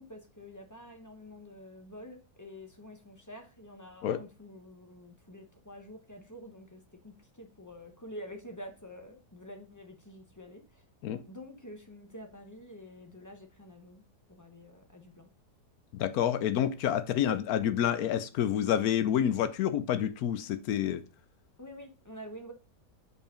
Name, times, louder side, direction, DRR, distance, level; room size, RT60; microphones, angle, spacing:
voice 1, 0.0-10.8 11.3-14.0 14.3-15.3 21.6-22.5, equal, 15° left, 0.6 m, -48 dB
voice 2, 15.9-21.0, left 10 dB, 70° left, 1.0 m, -28 dB
5.3 x 4.8 x 5.0 m
omnidirectional pair, 1.8 m